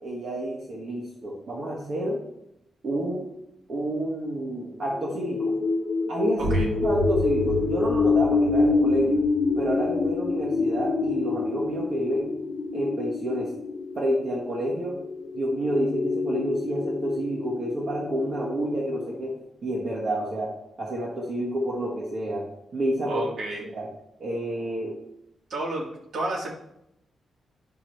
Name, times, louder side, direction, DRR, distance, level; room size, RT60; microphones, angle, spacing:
voice 1, 0.0-2.2 2.8-3.3 3.7-5.6 6.1-9.2 9.6-12.3 12.7-13.5 13.9-15.0 15.3-22.5 22.7-23.2 23.7-23.9 24.2-24.9, right 1 dB, 45° right, -3 dB, 1.4 m, -29 dB
sound 1, 4.9-19.2, left 4 dB, 35° left, 1.1 m, -27 dB
voice 2, 6.4-6.7 23.1-23.6 25.5-26.5, right 2 dB, 65° right, -1 dB, 1.9 m, -31 dB
sound 2, 6.4-11.9, right 1 dB, 85° right, 2.5 m, -33 dB
9.9 x 5.8 x 3.2 m, 0.82 s
wide cardioid pair, 155°, 0 cm